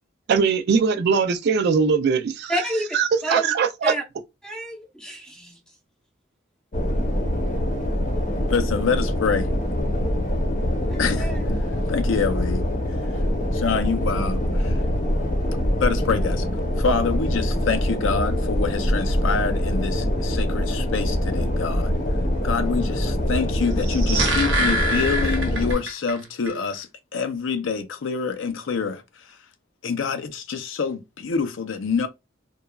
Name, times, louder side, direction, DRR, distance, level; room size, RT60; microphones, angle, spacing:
voice 1, 0.3-2.5 2.9-3.9, right 5 dB, 60° right, 0.3 m, -21 dB
voice 2, 2.5-3.0 3.2-3.5 3.8-4.0 4.4-5.6 10.9-11.4, right 1 dB, 5° left, 0.7 m, -28 dB
sound 1, 6.7-25.8, left 1 dB, 40° left, 0.7 m, -24 dB
voice 3, 8.5-9.5 11.0-11.3 11.9-12.6 13.5-14.7 15.8-16.5 16.8-21.9 22.4-26.9 27.1-29.0 29.8-32.1, left 5 dB, 80° left, 0.5 m, -26 dB
sound 2, 23.7-26.2 26.5-26.6, right 1 dB, 75° right, 0.8 m, -25 dB
3.0 x 2.3 x 2.2 m
head